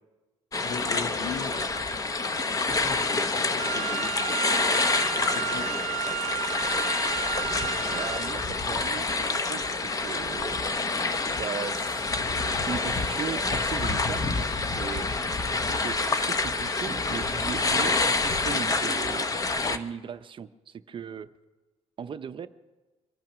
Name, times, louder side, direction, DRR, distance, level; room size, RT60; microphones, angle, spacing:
voice 1, 0.5-4.8 5.2-5.8, left 5 dB, 70° left, 5 dB, 1.8 m, -39 dB
sound 1, 0.5-19.8, left 3 dB, 30° left, 0.8 m, -27 dB
Wind instrument woodwind instrument, 3.6-8.4, right 18 dB, 90° right, 0.5 m, -33 dB
voice 2, 7.9-10.6 11.2-12.0 12.6-15.1 15.7-19.3 19.7-21.3 22.0-22.5, right 7 dB, 45° right, 11 dB, 0.6 m, -38 dB
24.5 x 9.1 x 6.0 m, 1.2 s
cardioid pair, 110°, 12 cm